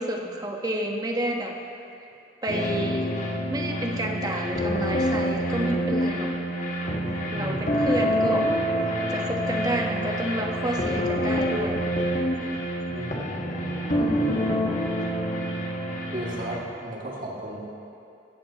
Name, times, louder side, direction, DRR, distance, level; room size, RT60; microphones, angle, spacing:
voice 1, 0.0-1.5 2.4-3.1 3.5-6.3 7.3-8.5 9.1-11.8 14.0-14.4, right 1 dB, 20° right, 1 dB, 1.1 m, -30 dB
sound 1, 2.5-16.6, equal, 45° left, 1.4 m, -27 dB
voice 2, 7.3-7.7 12.9-13.4 15.9-17.6, right 1 dB, 50° right, -4 dB, 2.2 m, -35 dB
16.5 x 14.0 x 3.0 m, 2.7 s
head